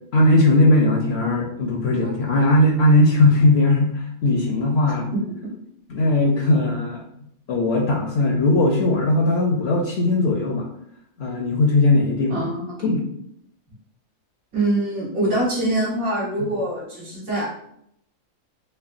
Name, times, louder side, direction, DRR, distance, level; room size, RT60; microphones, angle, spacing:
voice 1, 0.1-5.1 5.9-7.0 7.5-10.7 11.2-12.5 12.8-13.1 16.4-16.5, left 2 dB, 60° left, 1 dB, 0.8 m, -18 dB
voice 2, 12.3-12.8 14.5-17.5, right 1 dB, 80° right, -7 dB, 1.9 m, -24 dB
5.5 x 2.3 x 2.5 m, 0.72 s
omnidirectional pair, 1.4 m